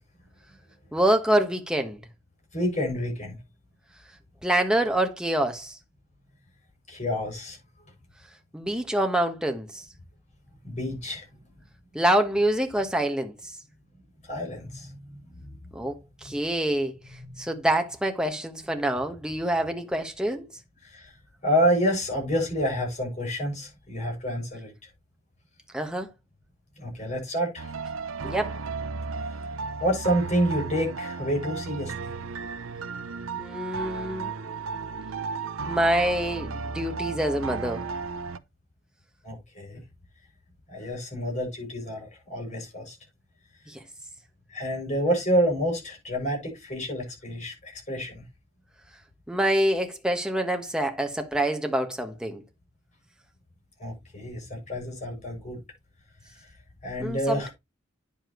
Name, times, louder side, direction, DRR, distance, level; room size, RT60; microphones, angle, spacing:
voice 1, 0.9-2.0 4.4-5.8 8.5-9.8 11.9-13.3 15.7-16.0 16.2-16.9 17.4-20.5 25.7-26.1 28.2-28.5 33.4-34.3 35.7-37.8 43.7-43.8 49.3-52.4 57.0-57.5, right 1 dB, 5° right, 1.3 m, -26 dB
voice 2, 2.5-3.4 6.9-7.6 10.6-11.3 14.2-15.6 16.2-16.4 17.1-17.5 20.8-21.1 21.4-24.9 26.8-27.7 29.2-29.4 29.8-32.2 39.2-39.8 40.7-43.0 44.5-48.2 53.8-55.6 56.3-56.5 56.8-57.5, equal, 35° left, 7.0 m, -29 dB
sound 1, 27.6-38.4, right 4 dB, 75° right, 0.6 m, -34 dB
9.9 x 7.3 x 3.1 m
head